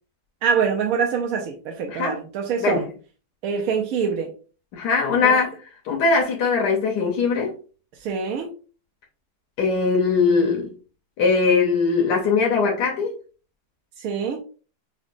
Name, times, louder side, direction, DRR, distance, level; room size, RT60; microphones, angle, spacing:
voice 1, 0.4-2.9 3.4-4.3 5.2-5.4 8.0-8.5 14.0-14.4, right 6 dB, 70° right, 0.9 m, -25 dB
voice 2, 4.7-5.5 5.8-7.5 9.6-10.7 11.2-13.1, left 4 dB, 85° left, 1.3 m, -20 dB
5.6 x 2.2 x 2.5 m
omnidirectional pair, 1.7 m